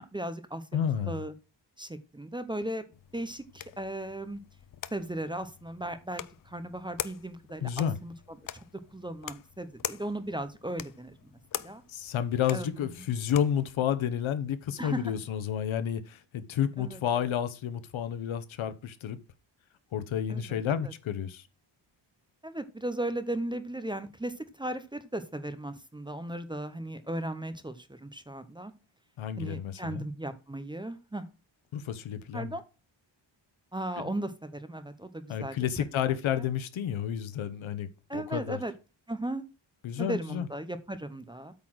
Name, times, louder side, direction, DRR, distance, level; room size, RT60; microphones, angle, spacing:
voice 1, 0.0-1.3 1.8-2.8 3.1-4.4 4.9-8.1 8.5-8.6 8.9-11.8 12.5-12.9 14.8-15.0 16.8-17.3 20.3-20.9 22.4-28.7 29.4-31.3 32.3-32.6 33.7-35.6 36.0-36.5 38.1-38.7 39.1-39.4 40.0-41.5, right 1 dB, 10° right, 0.6 m, -37 dB
voice 2, 0.7-1.2 7.6-8.0 11.9-19.2 19.9-21.4 29.2-30.0 31.7-32.5 34.0-34.1 35.3-38.6 39.8-40.5, left 9 dB, 85° left, 1.0 m, -31 dB
sound 1, 2.9-13.7, left 11 dB, 45° left, 0.5 m, -44 dB
8.6 x 4.0 x 6.1 m
wide cardioid pair, 175°, 46 cm